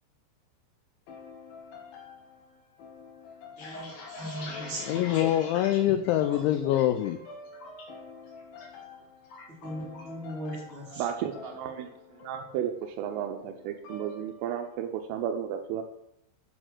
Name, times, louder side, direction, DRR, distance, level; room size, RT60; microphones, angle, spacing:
sound 1, 1.1-14.8, left 4 dB, 70° left, 3.8 m, -48 dB
sound 2, 3.3-7.0 7.3-7.8 8.2-8.7 8.9-10.2 10.5-10.8 11.1-11.6, left 2 dB, 45° left, 3.2 m, -43 dB
voice 1, 3.6-5.4 9.6-11.0, right 1 dB, 15° right, -9 dB, 2.7 m, -39 dB
voice 2, 4.9-7.2, left 12 dB, 85° left, 9 dB, 2.6 m, -25 dB
voice 3, 11.0-11.9 12.2-15.8, right 9 dB, 80° right, 4 dB, 3.2 m, -33 dB
9.0 x 6.4 x 6.1 m, 0.76 s
omnidirectional pair, 5.8 m